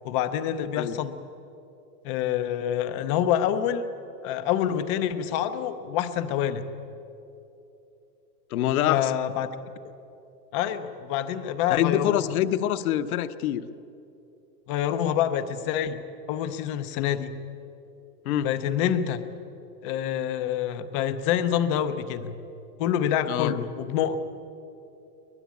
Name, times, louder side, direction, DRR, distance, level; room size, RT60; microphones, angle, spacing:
voice 1, 0.0-1.1 2.0-3.9 4.2-6.7 8.9-9.5 10.5-12.2 14.7-16.0 16.3-17.3 18.4-19.2 19.8-22.4 22.8-24.2, left 10 dB, 20° left, 10 dB, 0.5 m, -26 dB
voice 2, 8.5-9.1 11.7-13.7 17.0-17.1 18.2-18.5 23.3-23.5, left 12 dB, 60° left, 11 dB, 1.1 m, -25 dB
23.5 x 20.0 x 8.4 m, 2.8 s
supercardioid pair, 170°, 48 cm